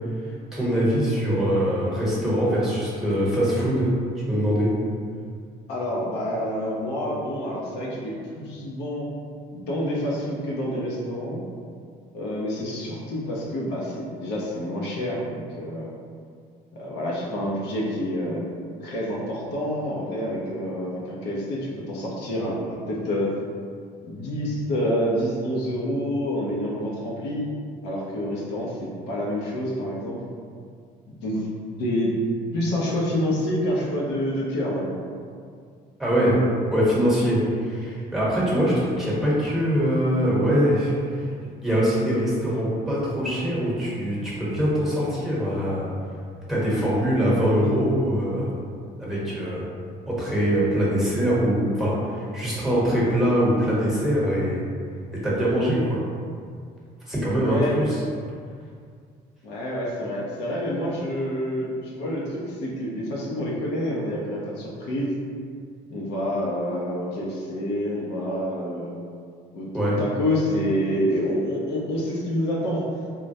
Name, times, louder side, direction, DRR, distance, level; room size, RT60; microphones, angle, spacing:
voice 1, 0.5-3.9 4.3-4.7 36.0-36.4 36.7-40.9 41.6-45.9 46.5-48.6 49.0-49.6 50.1-54.6 55.1-56.0 57.1-58.0 69.7-70.0, equal, ahead, -7 dB, 1.0 m, -23 dB
voice 2, 5.7-9.1 9.5-11.4 12.1-15.9 16.8-18.4 18.8-23.3 24.1-27.5 27.8-30.2 31.2-31.5 31.8-32.2 32.5-35.0 57.4-57.8 59.4-65.1 65.9-68.9 69.5-72.8, equal, 90° left, -5 dB, 0.7 m, -28 dB
3.6 x 2.1 x 2.6 m, 2.2 s
cardioid pair, 110°, 17 cm